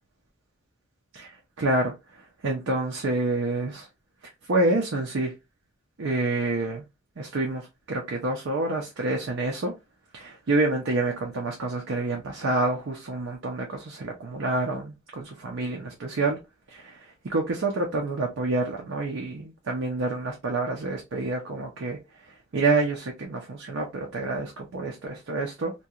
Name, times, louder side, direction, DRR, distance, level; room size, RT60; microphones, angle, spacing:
voice 1, 1.6-3.9 4.5-5.3 6.0-6.8 7.2-9.7 10.1-16.4 16.7-22.0 22.3-25.7, right 2 dB, 65° right, 0.6 m, -28 dB
2.8 x 2.2 x 2.3 m
head